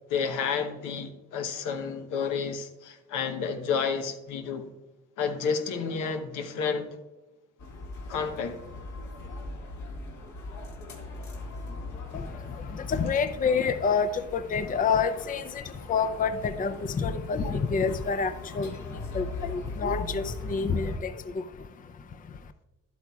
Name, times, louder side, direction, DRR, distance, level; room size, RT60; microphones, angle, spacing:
voice 1, 0.1-4.7 5.2-6.9 8.1-8.6 12.1-12.2, left 6 dB, 90° left, 0.9 m, -30 dB
sound 1, 7.6-21.0, left 2 dB, 70° left, 1.9 m, -40 dB
voice 2, 12.9-15.4 15.9-18.7 19.1-19.2 19.5-20.2 20.5-20.9, left 5 dB, 30° left, 0.5 m, -27 dB
11.5 x 8.3 x 2.3 m
cardioid pair, 90°, 30 cm